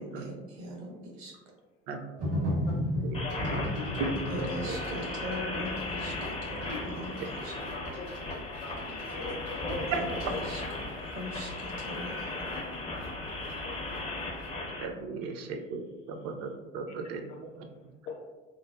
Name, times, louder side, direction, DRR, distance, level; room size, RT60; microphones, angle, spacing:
voice 1, 0.2-1.3 4.3-6.6 6.8-7.2 7.4-7.5 9.9-10.0 10.5-10.6 11.1-12.4, equal, 65° right, -1 dB, 0.8 m, -40 dB
sound 1, 2.2-14.0 14.4-14.5, equal, 85° right, 1.4 m, -37 dB
sound 2, 3.1-14.8, left 2 dB, 20° left, 0.4 m, -36 dB
voice 2, 3.2-3.9 7.7-8.1 8.6-8.7 9.1-9.8 10.9-11.0 12.9-13.0 13.6-13.7 14.0-14.1 18.1-18.2, left 4 dB, 80° left, 1 dB, 0.5 m, -41 dB
voice 3, 4.3-5.1 9.9-10.0 14.7-17.2 17.6-17.7, right 5 dB, 45° right, 5 dB, 0.4 m, -37 dB
2.9 x 2.0 x 2.2 m, 1.2 s
figure-of-eight pair, 60°, 36 cm